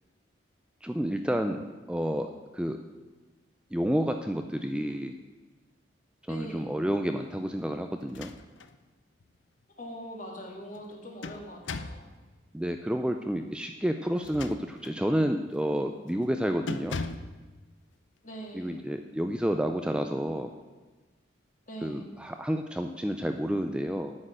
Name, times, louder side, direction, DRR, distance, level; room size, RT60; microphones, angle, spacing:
voice 1, 0.8-1.6 1.9-2.8 3.7-5.1 6.3-8.3 12.5-17.0 18.5-20.5 21.8-24.2, equal, 5° right, 5 dB, 0.4 m, -30 dB
voice 2, 6.3-6.9 9.8-12.0 18.2-18.9 21.7-22.2, equal, 40° left, 0 dB, 2.1 m, -42 dB
sound 1, 8.0-8.8 9.2-9.3 10.7-12.1 14.1-15.0 15.5-15.8 16.1-16.3 16.7-17.4, left 3 dB, 80° left, 0.7 m, -38 dB
9.2 x 6.5 x 8.7 m, 1.3 s
head